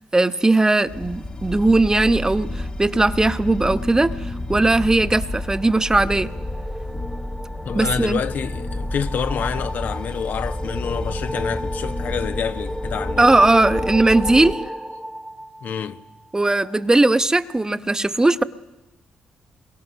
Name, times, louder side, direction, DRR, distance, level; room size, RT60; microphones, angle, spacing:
voice 1, 0.0-6.3 7.7-8.2 13.2-14.6 16.3-18.4, right 2 dB, 20° right, 1.4 m, -18 dB
sound 1, 0.8-14.5, left 1 dB, 30° left, 1.6 m, -30 dB
sound 2, 5.1-16.5, equal, ahead, 1.2 m, -33 dB
voice 2, 7.6-13.3 15.6-16.0, left 7 dB, 65° left, 1.4 m, -28 dB
28.0 x 23.0 x 6.5 m
supercardioid pair, 55°, 3 cm